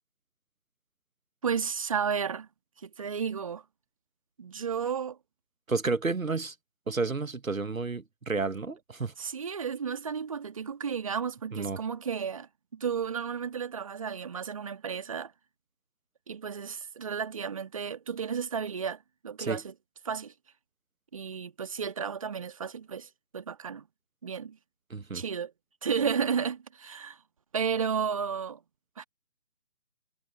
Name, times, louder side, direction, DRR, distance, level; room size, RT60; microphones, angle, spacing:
voice 1, 1.4-2.5 2.8-3.6 4.4-5.2 9.2-15.3 16.3-19.7 20.0-20.3 21.1-23.8 24.2-24.6 25.1-25.5 25.8-27.2 27.5-28.6 29.0-29.1, right 7 dB, 25° right, 1.6 m, -33 dB
voice 2, 5.7-6.5 6.9-9.1 11.5-11.8 19.4-19.6 24.9-25.2, right 4 dB, 70° right, 1.4 m, -31 dB
figure-of-eight pair, 155°, 43 cm